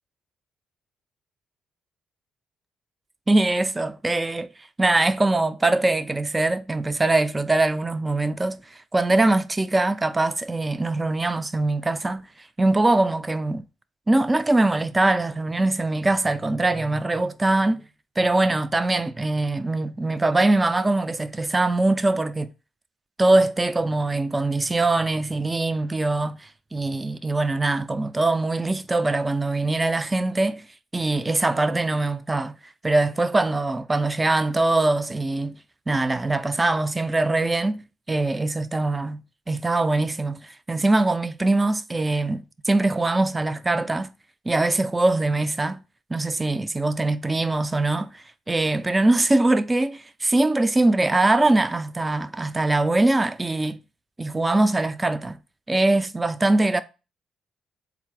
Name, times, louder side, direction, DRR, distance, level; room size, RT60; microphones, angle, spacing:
voice 1, 3.3-4.5 4.8-8.6 8.9-12.3 12.6-13.6 14.1-17.8 18.2-22.5 23.2-30.6 30.9-32.6 32.8-35.6 35.9-39.2 39.5-44.1 44.5-45.8 46.1-53.8 54.2-55.4 55.7-56.8, right 2 dB, 20° right, 0.3 m, -22 dB
3.7 x 2.5 x 4.6 m
supercardioid pair, 70°, 0 cm